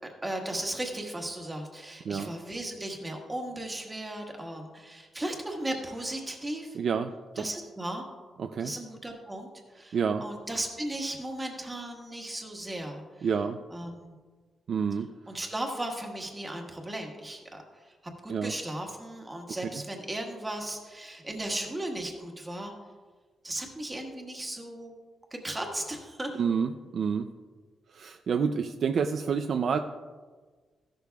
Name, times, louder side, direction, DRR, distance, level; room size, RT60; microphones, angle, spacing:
voice 1, 0.2-6.8 7.3-8.1 8.6-13.3 13.7-14.1 15.3-17.9 18.2-22.7 23.4-24.9 25.4-26.4, right 1 dB, 15° right, 1 dB, 1.5 m, -36 dB
voice 2, 6.7-7.4 8.4-8.7 9.9-10.2 13.2-13.6 14.7-15.1 18.3-18.5 26.4-27.3 27.9-29.8, right 6 dB, 55° right, 7 dB, 0.4 m, -28 dB
15.0 x 11.5 x 2.3 m, 1.4 s
wide cardioid pair, 160°, 0 cm